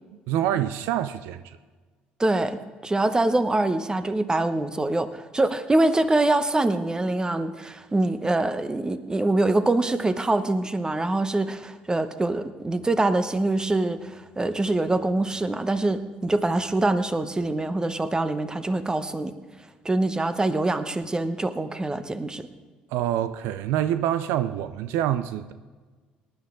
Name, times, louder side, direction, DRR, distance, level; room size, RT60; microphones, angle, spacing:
voice 1, 0.3-1.6 22.9-25.5, right 11 dB, 75° right, 0.5 m, -26 dB
voice 2, 2.2-19.3 19.8-22.5, right 2 dB, 20° right, 1.1 m, -24 dB
18.5 x 10.5 x 3.8 m
hypercardioid pair, 60°, 4 cm